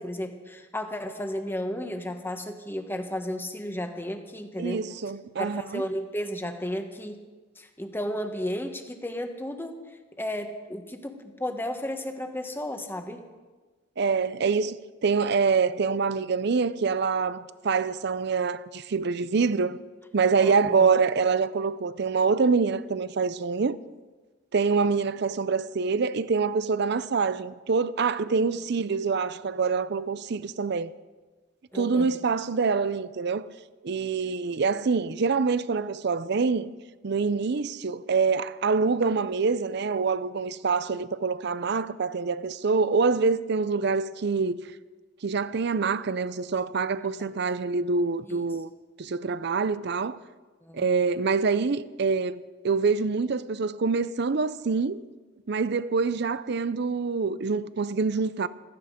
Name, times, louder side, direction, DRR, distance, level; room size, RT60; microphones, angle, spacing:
voice 1, 0.0-4.9 5.4-7.2 7.6-9.8 10.2-13.2 20.4-20.9 31.7-32.1 47.2-47.3 48.2-48.4 50.6-50.9, left 1 dB, 10° left, 1.2 m, -33 dB
voice 2, 4.6-5.8 14.0-14.8 15.0-19.8 20.1-23.8 24.5-30.9 31.7-33.4 33.8-36.7 37.0-44.6 45.2-48.7 49.0-50.2 50.7-52.4 52.6-55.0 55.5-58.5, right 4 dB, 60° right, 0.6 m, -25 dB
16.0 x 14.5 x 5.2 m
head